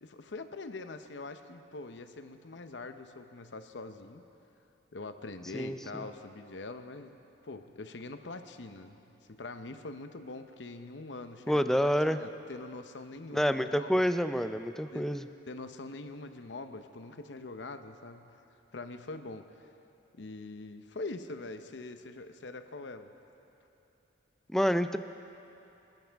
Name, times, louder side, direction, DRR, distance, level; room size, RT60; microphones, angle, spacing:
voice 1, 0.0-4.2 4.9-7.2 7.4-14.1 14.9-15.1 15.5-18.4 18.7-19.7 20.1-23.1, left 3 dB, 70° left, 8 dB, 0.8 m, -43 dB
voice 2, 5.5-6.0 11.5-12.2 13.3-15.3 24.5-25.0, equal, ahead, 10 dB, 0.4 m, -28 dB
26.0 x 13.0 x 3.5 m, 2.9 s
head